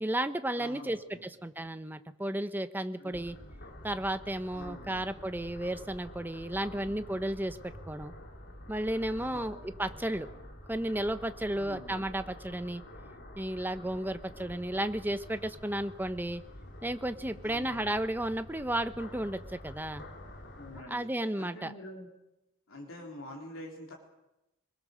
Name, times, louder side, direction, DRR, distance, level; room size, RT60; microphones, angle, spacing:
voice 1, 0.0-3.4 3.8-8.1 8.7-10.3 10.7-12.8 13.4-16.4 16.8-20.0 20.9-21.7, right 1 dB, 10° right, 10 dB, 1.0 m, -33 dB
voice 2, 0.6-1.3 3.0-3.2 4.5-5.0 6.6-7.2 9.2-9.9 11.5-12.0 17.4-18.0 20.5-21.1 21.4-22.1 22.7-23.9, left 1 dB, 85° left, -2 dB, 3.9 m, -47 dB
sound 1, 3.1-20.8, left 1 dB, 60° left, 3.7 m, -48 dB
24.5 x 21.5 x 6.7 m, 0.94 s
head